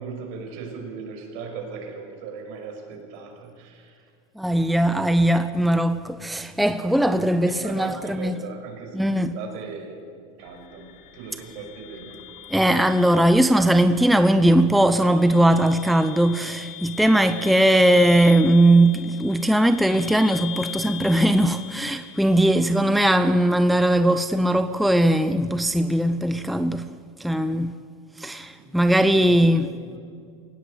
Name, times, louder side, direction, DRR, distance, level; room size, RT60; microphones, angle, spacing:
voice 1, 0.0-4.1 7.1-12.3 28.6-30.0, right 5 dB, 65° right, 5.9 m, -38 dB
voice 2, 4.4-8.4 8.9-9.3 12.5-26.9 27.2-27.7 28.2-29.7, right 1 dB, ahead, 0.6 m, -19 dB
sound 1, 10.4-23.4, left 11 dB, 55° left, 3.4 m, -41 dB
20.0 x 17.0 x 8.3 m
supercardioid pair, 125°, 15 cm